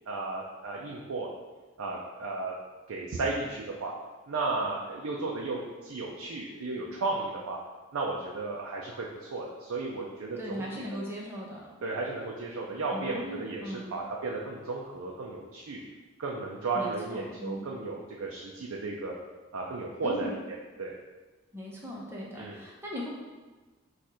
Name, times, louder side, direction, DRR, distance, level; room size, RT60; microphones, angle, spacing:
voice 1, 0.1-1.3 1.8-2.5 2.9-3.9 4.3-7.6 7.9-10.6 10.9-11.0 11.8-15.8 16.2-19.1 19.5-20.9 22.4-22.6, right 3 dB, 75° right, -2 dB, 0.5 m, -34 dB
voice 2, 10.4-11.7 12.9-13.9 16.7-17.6 20.0-20.3 21.5-23.1, equal, 10° right, -4 dB, 0.7 m, -38 dB
4.2 x 2.4 x 4.7 m, 1.3 s
head